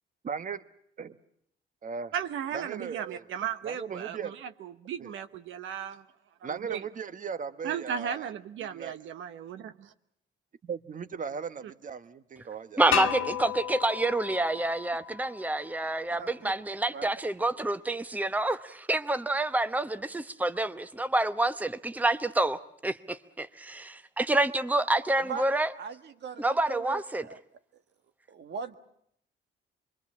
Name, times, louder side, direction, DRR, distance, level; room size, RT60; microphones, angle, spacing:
voice 1, 0.2-0.6 1.0-1.1 1.8-2.1 2.5-3.2 3.6-4.4 5.0-5.1 6.4-8.3 8.6-8.9 10.6-13.1, right 6 dB, 40° right, 12 dB, 1.2 m, -38 dB
voice 2, 2.1-4.3 4.6-6.0 6.4-6.8 7.6-9.9, right 8 dB, 80° right, 10 dB, 1.0 m, -36 dB
voice 3, 12.8-25.7 26.4-27.2, right 2 dB, 10° right, 11 dB, 0.9 m, -28 dB
sound 1, 12.9-15.8, left 9 dB, 85° left, 1.4 m, -33 dB
voice 4, 16.1-16.6 16.9-17.1 25.2-25.5 25.8-27.4 28.3-28.8, right 6 dB, 60° right, 9 dB, 1.6 m, -39 dB
25.5 x 23.0 x 7.2 m, 0.70 s
cardioid pair, 90°, 20 cm